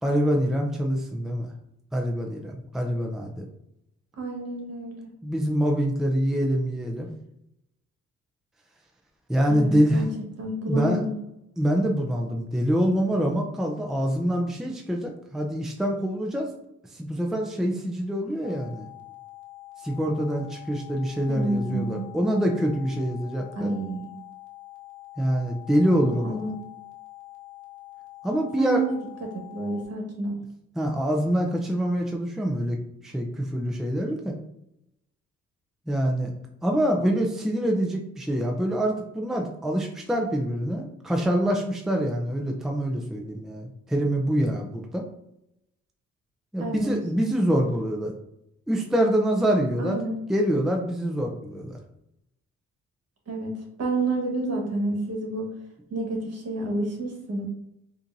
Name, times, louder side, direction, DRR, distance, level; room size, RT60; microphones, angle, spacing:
voice 1, 0.0-1.5 1.9-3.5 5.2-7.1 9.3-10.0 10.7-11.0 11.6-16.5 16.9-18.9 19.8-23.8 25.2-26.4 28.2-28.8 30.8-34.4 35.9-36.3 36.6-45.0 46.5-48.2 48.7-50.0 50.3-51.8, equal, ahead, 1 dB, 0.5 m, -25 dB
voice 2, 4.2-5.1 9.5-10.1 10.4-11.1 21.3-22.0 23.5-24.1 25.9-26.5 28.6-30.4 46.6-46.9 49.8-50.2 53.3-55.5 55.9-57.5, right 2 dB, 55° right, 0 dB, 1.4 m, -29 dB
sound 1, 18.4-29.9, left 17 dB, 75° left, 0.8 m, -45 dB
4.9 x 2.8 x 2.6 m, 0.83 s
cardioid pair, 90°, 30 cm